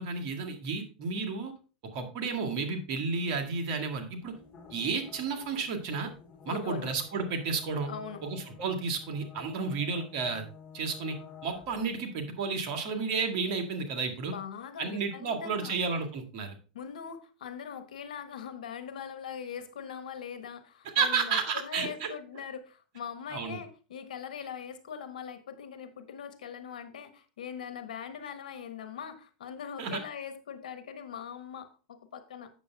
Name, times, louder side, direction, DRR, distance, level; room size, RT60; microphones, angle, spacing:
voice 1, 0.0-1.5 1.9-4.3 4.7-6.1 6.5-7.9 8.2-10.5 10.7-11.2 11.4-14.3 14.8-16.6 20.9-22.1 23.3-23.6 29.8-30.0, right 5 dB, 55° right, 5 dB, 2.0 m, -32 dB
sound 1, 4.2-12.0, left 6 dB, 30° left, 4.1 m, -51 dB
voice 2, 6.5-6.9 7.9-8.2 14.2-15.8 16.7-32.5, left 7 dB, 80° left, 10 dB, 1.3 m, -41 dB
8.3 x 7.1 x 3.4 m, 0.36 s
hypercardioid pair, 100°, 4 cm